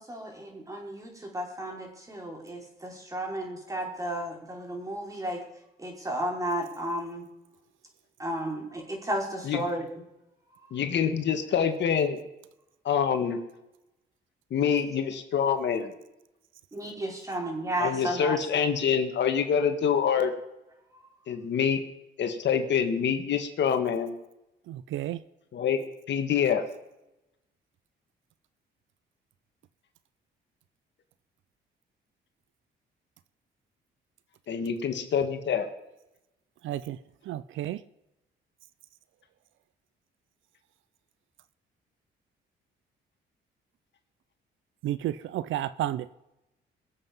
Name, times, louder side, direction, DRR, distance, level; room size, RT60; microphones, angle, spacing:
voice 1, 0.0-5.4 5.8-7.2 8.2-9.8 16.7-18.4, right 1 dB, 15° right, 0 dB, 4.9 m, -33 dB
voice 2, 10.7-12.2 12.9-13.4 14.5-15.9 17.8-20.3 21.3-21.8 22.2-24.1 25.5-26.6 34.5-35.7, left 7 dB, 65° left, 7 dB, 1.7 m, -26 dB
voice 3, 24.7-25.2 36.6-37.0 37.3-37.8 44.8-46.1, right 13 dB, 75° right, 16 dB, 0.6 m, -32 dB
22.5 x 7.7 x 5.4 m, 0.91 s
cardioid pair, 90°, 20 cm